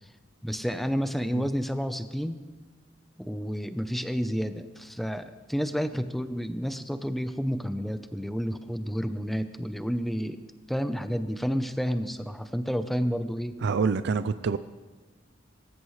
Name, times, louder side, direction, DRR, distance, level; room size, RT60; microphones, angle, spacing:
voice 1, 0.4-2.4 3.2-10.4 10.7-13.6, equal, ahead, 0.7 m, -30 dB
voice 2, 13.6-14.6, right 5 dB, 60° right, 0.4 m, -26 dB
24.5 x 14.0 x 3.2 m
head